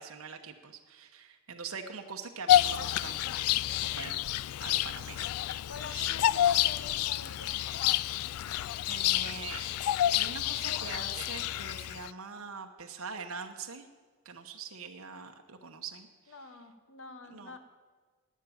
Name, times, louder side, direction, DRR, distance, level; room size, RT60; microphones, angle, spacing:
voice 1, 0.0-3.3 3.8-4.2 4.6-5.3 5.9-6.2 8.9-9.7 10.1-13.9 14.2-16.1 17.3-17.5, right 5 dB, 65° right, 4 dB, 1.0 m, -43 dB
Bird vocalization bird call bird song, 2.5-12.1, left 12 dB, 80° left, 0.3 m, -29 dB
voice 2, 5.7-7.6 16.3-17.6, left 3 dB, 60° left, 9 dB, 1.2 m, -47 dB
12.0 x 9.3 x 8.6 m, 1.4 s
head